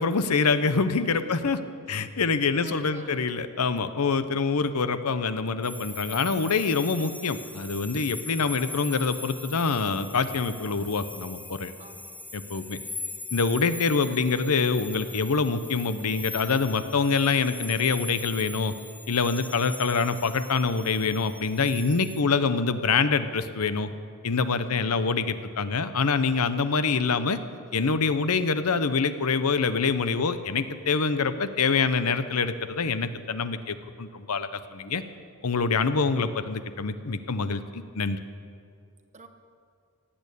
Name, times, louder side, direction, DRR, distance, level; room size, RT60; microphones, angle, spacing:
voice 1, 0.0-1.6 1.9-11.7 12.3-12.8 13.3-18.7 19.1-23.9 24.2-27.4 27.7-35.0 35.4-38.2, left 4 dB, 80° left, 11 dB, 0.8 m, -25 dB
voice 2, 2.6-3.4 11.8-12.1 24.7-25.1 39.1-39.3, right 3 dB, 30° right, 6 dB, 1.1 m, -47 dB
sound 1, 5.6-22.2, left 3 dB, 5° left, 0.4 m, -41 dB
17.0 x 8.9 x 8.4 m, 2.3 s
head